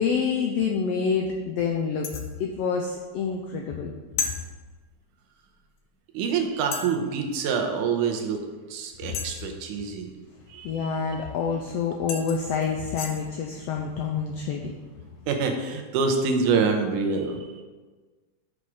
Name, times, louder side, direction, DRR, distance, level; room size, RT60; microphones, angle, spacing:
voice 1, 0.0-2.1 2.4-3.9 10.6-14.7, left 6 dB, 90° left, 2 dB, 1.4 m, -27 dB
sound 1, 2.0-2.3 4.2-4.4 5.8-5.9 6.7-7.0 9.1-9.6 11.6-11.7 12.1-13.2, left 6 dB, 70° left, 1.4 m, -32 dB
voice 2, 6.1-8.4 8.7-10.1 10.5-10.9 15.3-17.5, right 5 dB, 85° right, 4 dB, 2.4 m, -26 dB
7.3 x 6.3 x 4.7 m, 1.3 s
omnidirectional pair, 3.6 m